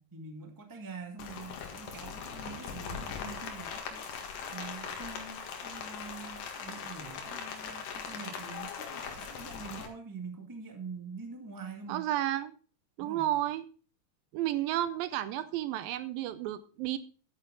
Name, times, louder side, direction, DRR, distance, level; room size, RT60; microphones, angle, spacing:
voice 1, 0.0-4.1 4.5-12.0 13.0-13.3, right 4 dB, 25° right, 4 dB, 0.4 m, -45 dB
Rain, 1.2-9.9, left 6 dB, 65° left, 3.3 m, -40 dB
voice 2, 11.9-12.6 13.0-13.7 14.3-17.0, right 13 dB, 80° right, 14 dB, 2.2 m, -32 dB
11.0 x 9.7 x 3.8 m, 0.38 s
omnidirectional pair, 4.5 m